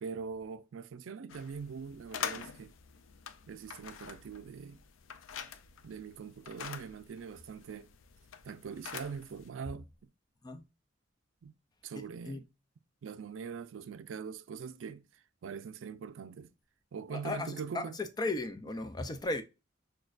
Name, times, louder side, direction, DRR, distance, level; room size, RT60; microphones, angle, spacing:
voice 1, 0.0-2.7 3.5-4.8 5.8-7.9 8.4-10.1 11.4-11.6 11.8-12.4 13.0-16.5 16.9-18.0, right 6 dB, 75° right, 0.4 m, -42 dB
sound 1, 1.3-9.5, left 7 dB, 85° left, 0.5 m, -45 dB
voice 2, 11.9-12.4 17.1-19.4, left 2 dB, 20° left, 0.4 m, -36 dB
6.2 x 2.2 x 2.4 m
head